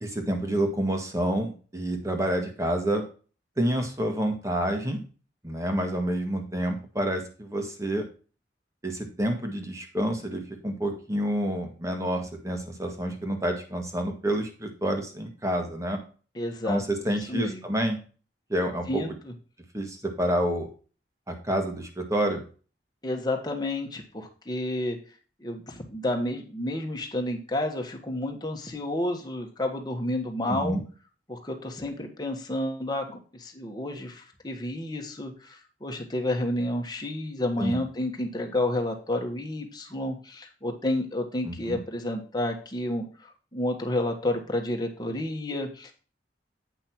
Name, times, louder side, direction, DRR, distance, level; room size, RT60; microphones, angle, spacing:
voice 1, 0.0-3.0 3.6-5.0 5.4-8.0 8.8-16.0 16.6-18.0 18.5-19.0 19.7-20.7 21.3-22.4 30.5-30.8 37.6-37.8 41.4-41.8, right 1 dB, 20° right, 4 dB, 1.6 m, -28 dB
voice 2, 16.3-17.6 18.9-19.3 23.0-25.0 25.4-30.8 31.3-45.9, left 1 dB, 25° left, 2 dB, 1.5 m, -30 dB
8.4 x 5.6 x 4.4 m, 0.37 s
head